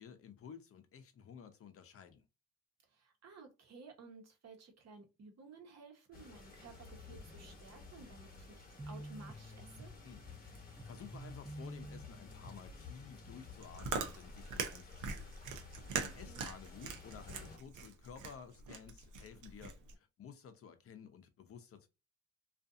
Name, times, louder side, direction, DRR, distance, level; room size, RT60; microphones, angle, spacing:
voice 1, 0.0-2.2 10.0-15.3 16.0-21.9, left 7 dB, 50° left, 0.6 m, -54 dB
voice 2, 2.9-9.9 16.0-16.4, right 4 dB, 60° right, 1.0 m, -56 dB
sound 1, 6.1-17.6, left 4 dB, 30° left, 1.0 m, -54 dB
sound 2, 8.8-14.1, right 1 dB, 10° right, 0.6 m, -51 dB
Chewing mastication, 13.5-19.9, right 5 dB, 90° right, 0.6 m, -42 dB
2.6 x 2.4 x 2.4 m
cardioid pair, 90°, 30 cm